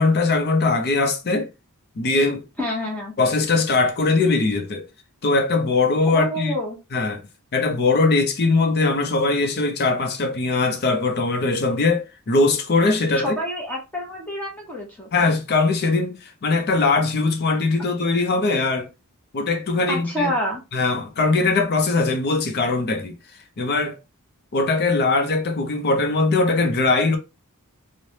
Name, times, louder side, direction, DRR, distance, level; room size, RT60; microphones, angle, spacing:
voice 1, 0.0-1.5 2.0-2.4 3.2-4.9 5.2-6.5 6.9-7.2 7.5-13.4 15.1-18.9 19.3-20.3 20.7-23.2 23.6-24.0 24.5-27.2, left 3 dB, 45° left, 0.6 m, -21 dB
voice 2, 2.6-3.1 6.1-6.8 13.1-15.1 19.9-20.6, equal, 5° left, 0.7 m, -27 dB
3.2 x 2.0 x 2.7 m
head